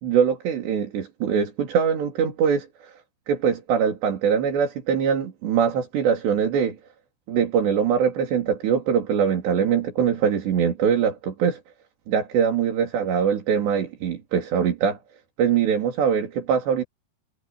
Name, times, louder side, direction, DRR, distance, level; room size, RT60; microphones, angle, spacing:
voice 1, 0.0-2.9 3.3-6.8 7.3-11.6 12.1-15.0 15.4-16.8, right 7 dB, 75° right, 5.6 m, -22 dB
omnidirectional pair, 5.0 m